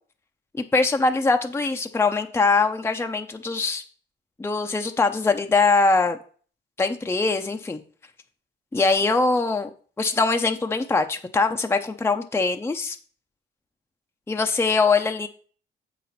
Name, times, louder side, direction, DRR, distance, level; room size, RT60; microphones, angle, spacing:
voice 1, 0.5-3.8 4.4-6.2 6.8-7.8 8.7-9.7 10.0-13.0 14.3-15.3, left 3 dB, 10° left, 5 dB, 0.6 m, -22 dB
7.5 x 5.9 x 4.1 m, 0.43 s
cardioid pair, 90°, 20 cm